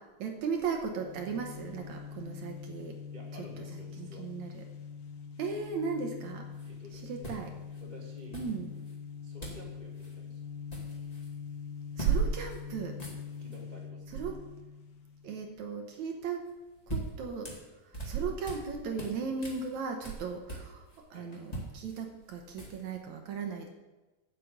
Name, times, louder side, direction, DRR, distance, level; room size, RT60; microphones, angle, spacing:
voice 1, 0.2-3.0 3.6-4.6 5.4-6.5 6.9-7.5 8.3-8.7 12.0-13.0 14.1-14.4 15.2-16.4 16.9-17.5 17.8-23.7, right 5 dB, 65° right, 3 dB, 2.0 m, -35 dB
sound 1, 0.9-15.5, left 6 dB, 70° left, 2.0 m, -44 dB
voice 2, 3.1-4.3 6.6-7.4 7.8-8.4 9.2-10.4 13.4-14.1 21.1-21.3, left 1 dB, 45° left, -3 dB, 0.5 m, -51 dB
sound 2, 6.5-6.7 7.2-7.8 8.3-8.9 9.4-9.7 9.9-10.1 10.5-11.3 12.0-12.2 12.5-12.6 12.9-13.6 16.5-18.7 19.0-21.0 21.3-23.0, right 1 dB, 15° left, 1.3 m, -42 dB
9.3 x 7.5 x 8.0 m, 1.1 s
omnidirectional pair, 4.1 m